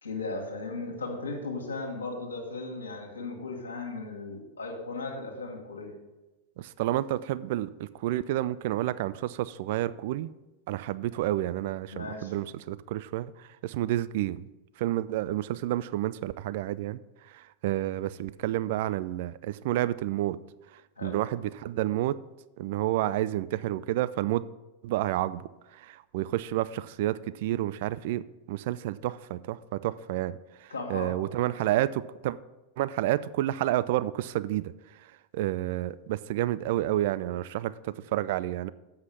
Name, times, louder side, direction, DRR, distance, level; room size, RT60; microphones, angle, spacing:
voice 1, 0.0-6.0 11.9-12.4 21.0-21.2 30.7-31.3, left 3 dB, 75° left, 0 dB, 1.6 m, -36 dB
voice 2, 6.6-10.3 10.7-14.5 14.8-17.0 17.3-20.4 21.0-22.2 22.6-24.4 24.8-25.5 25.7-32.4 32.8-34.7 35.3-38.7, right 14 dB, 50° right, 15 dB, 0.3 m, -30 dB
7.9 x 5.6 x 6.9 m, 1.1 s
figure-of-eight pair, 90°, 0 cm